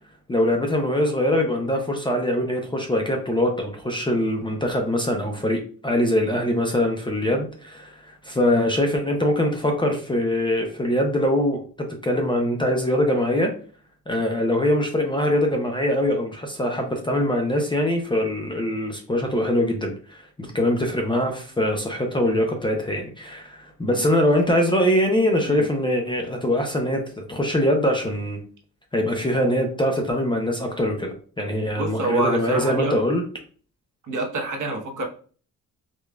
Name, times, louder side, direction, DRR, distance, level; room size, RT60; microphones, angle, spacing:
voice 1, 0.3-13.5 14.1-27.0 27.3-28.4 28.9-33.2, left 1 dB, 15° left, 2 dB, 0.5 m, -23 dB
voice 2, 31.8-32.9 34.1-35.1, right 2 dB, 55° right, 2 dB, 1.0 m, -26 dB
5.0 x 2.3 x 2.2 m, 0.42 s
cardioid pair, 125°, 35 cm